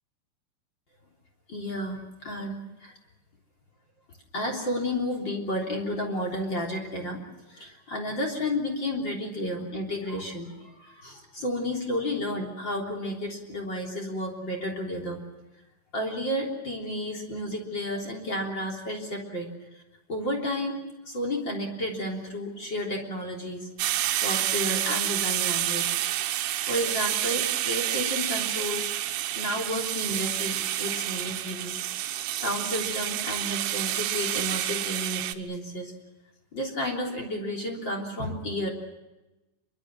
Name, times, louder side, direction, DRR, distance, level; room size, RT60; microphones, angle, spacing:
voice 1, 1.5-2.9 4.3-7.2 7.5-15.2 15.9-19.8 20.1-23.7 24.1-26.0 26.6-28.9 29.3-35.9 36.5-38.7, left 1 dB, 25° left, 1 dB, 3.5 m, -32 dB
sound 1, 23.8-35.4, right 13 dB, 80° right, 3.6 m, -29 dB
27.5 x 23.5 x 6.2 m, 1.0 s
omnidirectional pair, 5.5 m